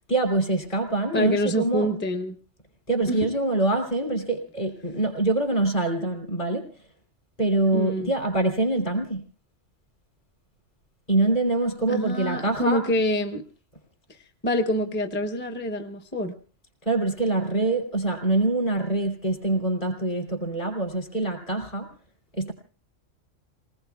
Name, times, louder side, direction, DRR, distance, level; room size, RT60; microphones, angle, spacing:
voice 1, 0.1-1.9 2.9-6.6 7.4-9.2 11.1-12.8 16.8-21.9 22.4-22.5, right 2 dB, 40° left, 3 dB, 3.6 m, -24 dB
voice 2, 1.1-2.4 3.1-3.2 7.7-8.1 11.9-13.4 14.4-16.3, equal, 10° left, 5 dB, 0.8 m, -26 dB
29.5 x 19.5 x 2.3 m, 0.39 s
omnidirectional pair, 1.3 m